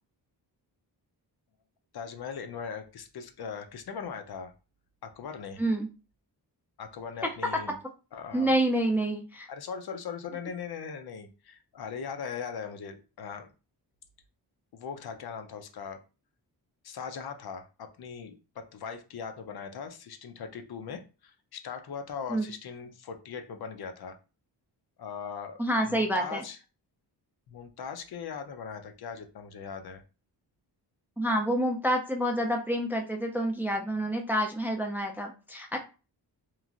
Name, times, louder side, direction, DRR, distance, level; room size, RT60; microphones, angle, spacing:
voice 1, 1.9-4.5 5.0-5.6 6.8-7.8 8.1-8.5 9.5-13.5 14.7-16.0 16.8-24.2 25.0-26.6 27.5-30.0, left 6 dB, 60° left, 7 dB, 0.6 m, -40 dB
voice 2, 8.3-9.5 22.3-22.5 25.6-26.4 31.2-35.8, right 1 dB, 5° right, 2 dB, 0.4 m, -28 dB
3.1 x 2.5 x 2.4 m, 0.32 s
cardioid pair, 90°, 43 cm